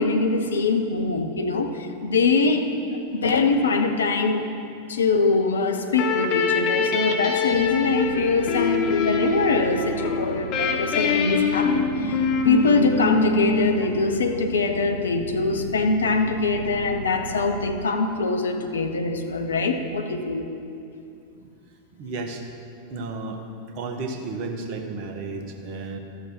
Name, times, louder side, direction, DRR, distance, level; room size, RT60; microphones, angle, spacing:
voice 1, 0.0-2.7 3.1-4.5 4.9-20.5, left 4 dB, 70° left, 5 dB, 0.9 m, -23 dB
sound 1, 5.9-14.4, left 4 dB, 40° left, 1.0 m, -25 dB
sound 2, 7.5-17.9, right 7 dB, 70° right, 0.3 m, -37 dB
voice 2, 21.9-22.5 22.9-23.4 23.7-26.0, right 3 dB, 45° right, 4 dB, 1.2 m, -33 dB
14.0 x 6.5 x 6.1 m, 2.6 s
figure-of-eight pair, 90°, 0 cm